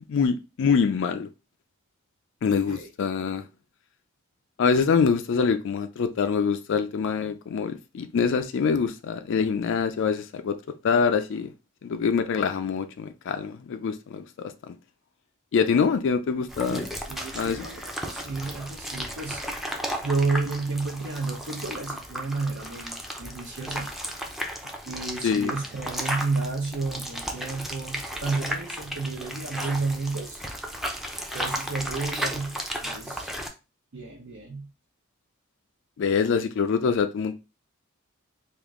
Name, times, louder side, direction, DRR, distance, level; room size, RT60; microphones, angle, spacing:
voice 1, 0.1-1.3 2.4-3.4 4.6-10.6 10.8-11.5 11.8-14.7 15.5-16.8 17.3-17.7 25.2-25.5 36.0-37.3, left 5 dB, 60° left, 0.4 m, -25 dB
sound 1, 16.5-33.5, equal, ahead, 0.5 m, -34 dB
voice 2, 17.1-19.4 20.0-23.9 24.8-30.4 31.3-33.3 33.9-34.7, right 3 dB, 65° right, 0.8 m, -31 dB
3.5 x 2.5 x 3.6 m
head